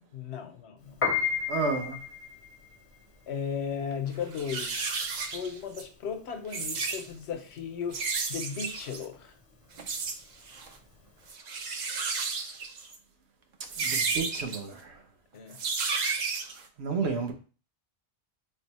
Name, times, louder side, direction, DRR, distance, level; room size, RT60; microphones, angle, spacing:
voice 1, 0.1-1.0 3.3-4.9 5.3-8.0 8.3-9.4 15.3-15.6, left 7 dB, 80° left, 0.9 m, -36 dB
Piano, 0.9-11.3, left 6 dB, 40° left, 0.5 m, -35 dB
voice 2, 1.5-2.0 13.8-14.8 16.8-17.3, right 4 dB, 80° right, 1.1 m, -31 dB
sound 1, 3.8-3.9 4.3-5.8 6.4-7.0 7.9-9.0 9.8-10.2 10.5-10.7 11.3-13.0 13.7-14.6 15.5-16.6, right 4 dB, 55° right, 0.5 m, -32 dB
4.0 x 2.0 x 4.0 m
omnidirectional pair, 1.1 m